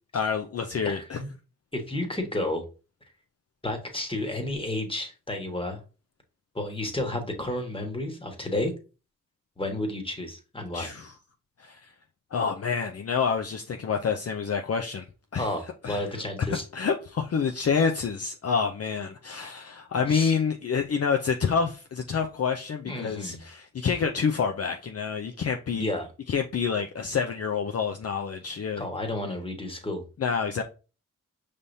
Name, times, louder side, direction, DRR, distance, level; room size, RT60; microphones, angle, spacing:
voice 1, 0.1-1.2 10.7-11.1 11.6-11.9 12.3-15.1 15.3-15.5 15.8-16.1 16.5-25.9 26.3-28.8 30.2-30.6, left 6 dB, 50° left, 0.5 m, -28 dB
voice 2, 0.8-1.3 1.7-2.6 3.6-5.8 6.5-8.7 9.6-10.9 15.3-16.6 20.1-20.3 22.8-23.4 25.7-26.1 28.8-30.0, left 1 dB, 15° left, 1.4 m, -31 dB
5.3 x 3.4 x 2.6 m
cardioid pair, 50°, 31 cm